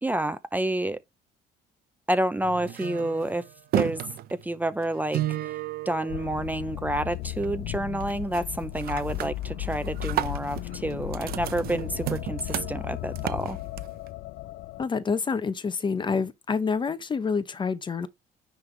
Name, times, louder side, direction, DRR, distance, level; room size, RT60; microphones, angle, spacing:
voice 1, 0.0-1.0 2.1-3.4 3.7-4.0 4.3-5.6 5.9-13.6, right 1 dB, 10° right, 0.6 m, -29 dB
sound 1, 2.4-6.9 7.3-7.7 8.0-8.4 8.8-14.1, right 13 dB, 65° right, 0.6 m, -34 dB
sound 2, 6.1-14.8, left 16 dB, 80° left, 0.4 m, -35 dB
voice 2, 14.8-18.1, left 5 dB, 30° left, 0.7 m, -27 dB
9.7 x 3.4 x 3.3 m
cardioid pair, 110°, 17 cm